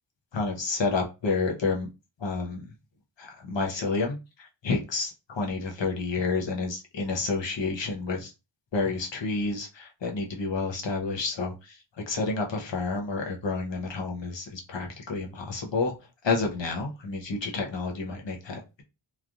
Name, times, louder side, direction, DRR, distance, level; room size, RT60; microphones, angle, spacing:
voice 1, 0.3-1.9 2.2-2.7 3.2-8.3 8.7-11.8 12.1-15.9 16.2-18.8, left 3 dB, 65° left, 1 dB, 0.9 m, -30 dB
3.1 x 2.4 x 2.5 m, 0.28 s
wide cardioid pair, 90°, 49 cm